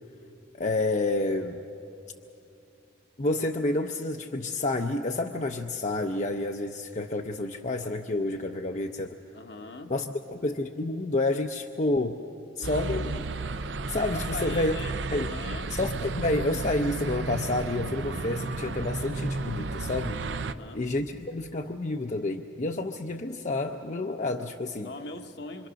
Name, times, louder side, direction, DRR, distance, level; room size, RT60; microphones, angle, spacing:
voice 1, 0.6-1.6 3.2-9.2 9.9-12.2 12.6-13.3 13.9-14.7 15.1-15.3 15.7-20.2 20.7-24.9, left 2 dB, 40° left, 4 dB, 0.6 m, -29 dB
voice 2, 9.3-9.9 14.1-15.0 15.2-16.1 20.5-20.8 24.8-25.7, left 2 dB, 60° left, 5 dB, 1.1 m, -40 dB
sound 1, 12.6-20.5, right 3 dB, 75° right, 0.7 m, -33 dB
26.0 x 25.0 x 6.3 m, 2.6 s
head